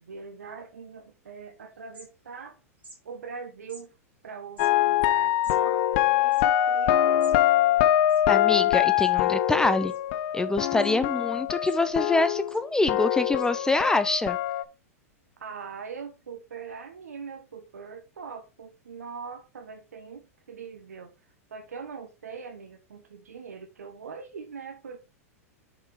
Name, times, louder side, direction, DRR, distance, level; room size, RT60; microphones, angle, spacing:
voice 1, 0.0-2.6 3.0-3.9 4.2-7.3 11.2-11.5 15.4-21.1 21.5-25.0, right 5 dB, 85° right, 1.2 m, -42 dB
sound 1, 1.4-1.5 1.7-2.5 2.8-3.0 3.7-3.8 4.4-7.4 7.7-7.8 8.0-8.6 9.0-9.4 9.9-10.4 10.8-10.9 11.4-12.1 12.5-12.7 13.4-13.5, right 2 dB, 15° right, 3.3 m, -52 dB
sound 2, 4.6-12.6 12.9-14.6, left 12 dB, 55° left, 0.7 m, -24 dB
voice 2, 8.3-9.9 10.3-14.4, left 2 dB, 10° left, 0.6 m, -25 dB
6.4 x 5.3 x 3.6 m
hypercardioid pair, 110°, 8 cm